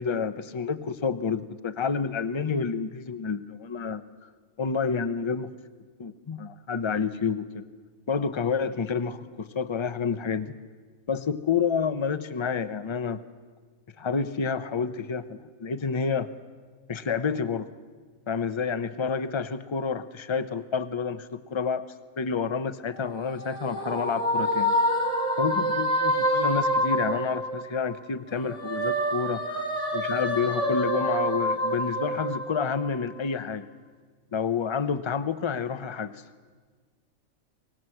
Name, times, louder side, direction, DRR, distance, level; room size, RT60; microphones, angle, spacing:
voice 1, 0.0-4.0 4.6-5.5 6.0-7.6 8.1-10.5 11.1-13.2 14.0-16.3 16.9-17.7 18.3-21.9 22.2-24.7 25.4-29.6 29.9-33.7 34.3-36.2, left 5 dB, 30° left, 12 dB, 0.6 m, -29 dB
sound 1, 22.9-27.9 28.3-33.1, equal, 25° right, 3.3 m, -27 dB
23.0 x 19.5 x 7.8 m, 1.5 s
omnidirectional pair, 1.5 m